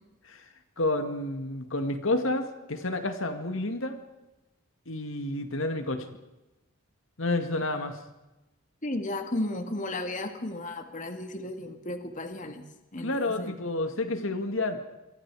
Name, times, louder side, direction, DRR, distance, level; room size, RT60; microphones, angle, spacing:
voice 1, 0.8-4.0 4.9-6.1 7.2-8.0 13.0-14.8, left 2 dB, 65° left, 7 dB, 2.1 m, -30 dB
voice 2, 8.8-12.6 12.9-13.5, left 1 dB, 35° left, 6 dB, 2.1 m, -34 dB
28.0 x 23.5 x 4.9 m, 1.0 s
head